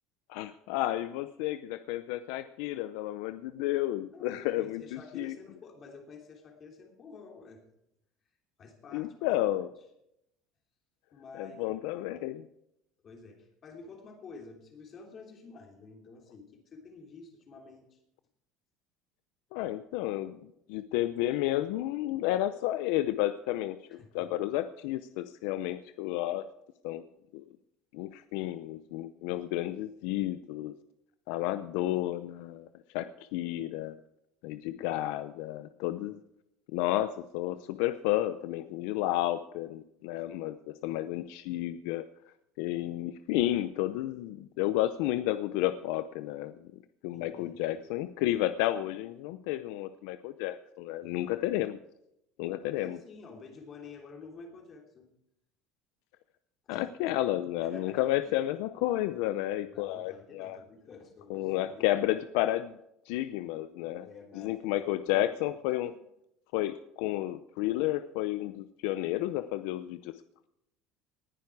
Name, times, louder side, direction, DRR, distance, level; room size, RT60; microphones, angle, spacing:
voice 1, 0.3-5.3 8.9-9.7 11.4-12.4 19.5-26.5 26.8-27.0 27.3-27.4 27.9-30.7 31.3-32.7 32.9-34.0 34.4-36.2 36.7-42.1 42.6-46.7 47.0-51.8 52.4-53.0 56.7-60.6 61.3-62.8 63.1-64.1 64.3-65.9 66.5-70.1, left 14 dB, 70° left, 12 dB, 0.6 m, -31 dB
voice 2, 4.1-7.6 8.6-9.3 11.1-12.1 13.0-18.0 23.9-24.3 47.1-47.8 51.0-51.3 52.6-55.1 56.6-57.2 57.6-58.3 59.6-62.0 63.9-65.3, left 4 dB, 30° left, 3 dB, 3.0 m, -50 dB
19.5 x 10.5 x 4.8 m, 0.81 s
cardioid pair, 155°, 0 cm